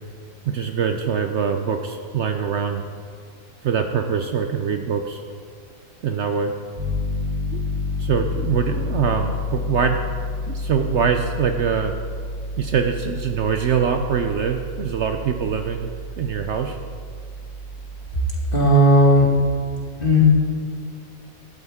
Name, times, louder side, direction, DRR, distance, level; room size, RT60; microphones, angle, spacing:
voice 1, 0.5-2.8 3.6-5.2 6.0-6.5 7.5-7.7 8.0-10.0 10.5-11.9 12.6-15.9 16.2-16.8, right 7 dB, 65° right, 5 dB, 0.8 m, -23 dB
Piano, 6.8-18.1, left 2 dB, 30° right, 2.6 m, -30 dB
voice 2, 18.5-19.3 20.0-20.2, equal, 40° left, -3 dB, 2.2 m, -14 dB
12.5 x 12.0 x 3.6 m, 2.1 s
omnidirectional pair, 1.5 m